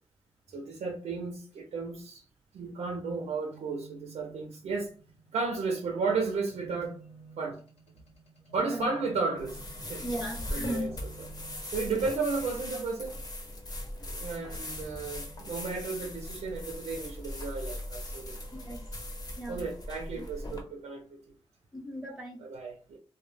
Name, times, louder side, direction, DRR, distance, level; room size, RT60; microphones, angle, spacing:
voice 1, 0.5-2.2 2.5-4.9 5.3-7.0 7.4-7.6 8.5-9.6 9.9-10.0 10.5-11.1 11.7-13.2 14.0-18.5 19.5-21.2 22.4-23.0, right 4 dB, 90° right, 0.4 m, -33 dB
sound 1, 3.5-12.5 14.5-16.4 17.9-19.9, right 4 dB, 75° left, 1.0 m, -54 dB
sound 2, 9.4-20.6, left 1 dB, 35° left, 0.8 m, -40 dB
voice 2, 10.0-10.9 18.5-18.8 19.4-19.6 20.2-20.3 21.7-22.4, equal, 5° right, 0.6 m, -36 dB
2.1 x 2.0 x 3.1 m
cardioid pair, 65°, 11 cm